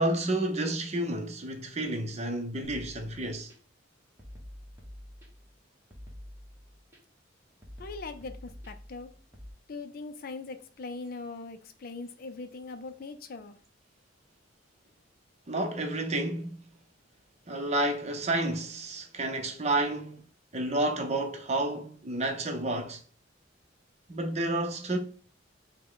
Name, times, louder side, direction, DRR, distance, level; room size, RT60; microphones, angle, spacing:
voice 1, 0.0-3.5 15.5-16.7 17.5-20.2 20.5-23.0 24.1-25.0, right 1 dB, 35° right, 0.7 m, -30 dB
sound 1, 2.6-3.6 4.2-5.5 5.9-7.0 7.6-9.5, equal, 15° right, 1.1 m, -47 dB
voice 2, 7.8-9.1 9.7-13.6, left 3 dB, 50° left, 0.4 m, -41 dB
5.3 x 2.2 x 3.8 m
head